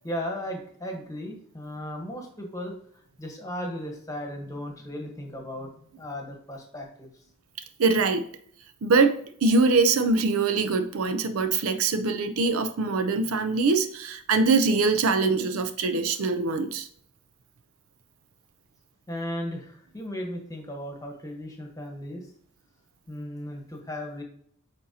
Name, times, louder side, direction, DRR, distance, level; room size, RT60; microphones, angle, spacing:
voice 1, 0.0-7.2 19.1-22.3 23.1-24.2, left 1 dB, 15° left, 1.2 m, -36 dB
voice 2, 7.8-8.2 8.8-16.9, right 3 dB, 80° right, 0.5 m, -23 dB
8.7 x 4.1 x 2.8 m
head